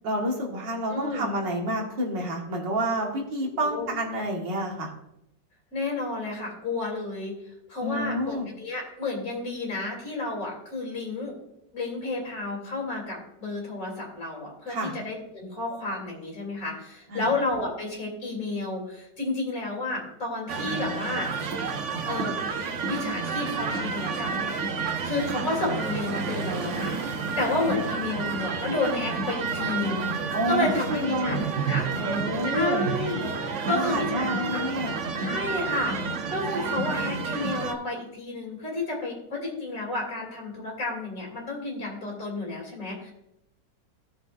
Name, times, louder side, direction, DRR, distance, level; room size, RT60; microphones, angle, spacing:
voice 1, 0.0-4.9 7.8-8.5 14.7-14.9 17.1-17.3 25.3-25.5 30.3-31.4 31.9-32.8 33.7-35.0, equal, 80° right, -1 dB, 2.4 m, -29 dB
voice 2, 0.9-1.3 3.5-3.9 5.7-7.3 7.7-11.3 11.7-21.3 22.0-22.3 22.9-24.5 25.0-27.0 27.4-30.1 30.5-31.9 32.5-33.3 33.6-34.6 35.2-43.1, left 2 dB, 45° left, -2 dB, 3.4 m, -31 dB
sound 1, 20.5-37.7, right 4 dB, 55° right, 0.9 m, -30 dB
15.5 x 6.6 x 2.6 m, 0.81 s
omnidirectional pair, 1.9 m